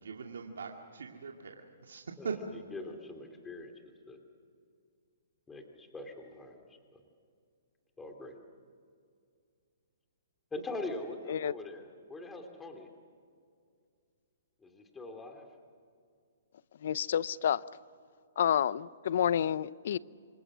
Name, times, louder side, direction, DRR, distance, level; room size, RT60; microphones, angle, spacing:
voice 1, 0.0-2.4, right 5 dB, 85° right, 1 dB, 2.3 m, -41 dB
voice 2, 2.7-4.2 5.5-6.6 6.9-7.0 8.0-8.4 10.5-12.9 14.6-15.5, left 2 dB, 10° left, 4 dB, 3.0 m, -43 dB
voice 3, 16.8-17.6 18.4-20.0, left 9 dB, 65° left, 19 dB, 0.7 m, -29 dB
28.0 x 25.0 x 6.3 m, 2.2 s
hypercardioid pair, 145°, 0 cm